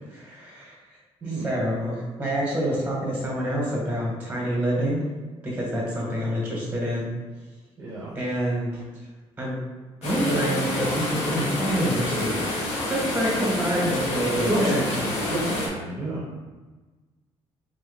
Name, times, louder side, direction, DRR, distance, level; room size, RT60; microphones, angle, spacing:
voice 1, 0.1-0.7 1.2-5.0 5.4-7.1 8.1-8.8 9.4-9.6 10.0-14.8, right 1 dB, 15° right, -4 dB, 1.5 m, -27 dB
voice 2, 1.2-1.5 7.8-8.1 14.5-16.2, right 1 dB, 30° right, -6 dB, 1.0 m, -29 dB
sound 1, 10.0-15.7, left 1 dB, 70° left, 1.2 m, -28 dB
3.8 x 3.0 x 4.0 m, 1.3 s
cardioid pair, 145°, 11 cm